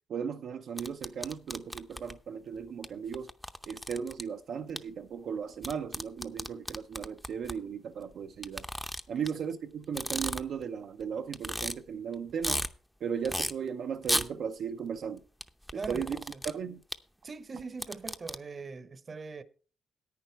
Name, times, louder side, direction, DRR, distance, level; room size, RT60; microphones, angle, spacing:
voice 1, 0.1-3.3 3.7-8.6 9.1-12.6 13.0-15.2 15.9-16.2 16.4-16.8, right 7 dB, 65° right, 0.6 m, -36 dB
sound 1, 0.8-2.1 2.8-2.9 3.1-4.2 4.8-4.9 5.6-7.5 8.4-9.3 9.8-10.6 11.0-11.1 11.3-11.7 12.1-12.7 13.2-13.5 14.0-14.3 15.4-16.5 16.9-17.0 17.6-18.4, equal, ahead, 0.7 m, -33 dB
voice 2, 15.7-16.4 17.2-19.4, right 4 dB, 35° right, 0.9 m, -41 dB
10.5 x 9.0 x 4.6 m
cardioid pair, 90°, 0 cm